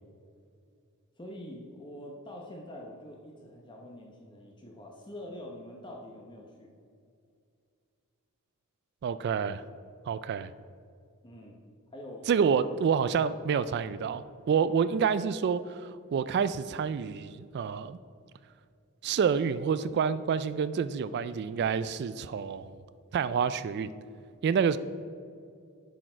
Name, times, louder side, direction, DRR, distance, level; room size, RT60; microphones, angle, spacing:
voice 1, 1.2-6.7 11.2-11.6 11.9-12.3, left 1 dB, 20° left, 0 dB, 0.8 m, -45 dB
voice 2, 9.0-9.6 10.1-10.5 12.3-18.0 19.0-22.7 23.1-23.9 24.4-24.8, right 6 dB, 50° right, 14 dB, 0.3 m, -28 dB
10.5 x 6.4 x 4.4 m, 2.4 s
head